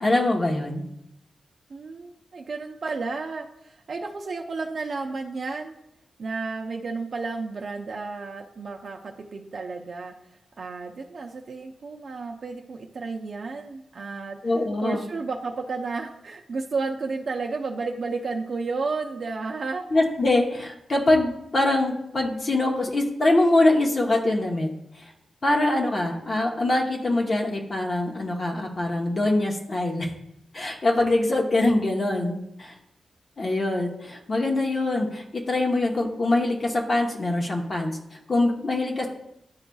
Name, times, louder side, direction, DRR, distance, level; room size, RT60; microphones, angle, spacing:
voice 1, 0.0-0.9 14.4-15.0 19.9-24.7 25.0-25.1 25.4-30.1 30.5-32.7 33.4-39.1, left 2 dB, 45° left, 0 dB, 0.9 m, -23 dB
voice 2, 1.7-5.8 6.2-10.1 10.6-14.4 14.8-19.9, right 4 dB, 60° right, 2 dB, 0.5 m, -32 dB
10.5 x 3.9 x 2.3 m, 0.79 s
cardioid pair, 75°, 0 cm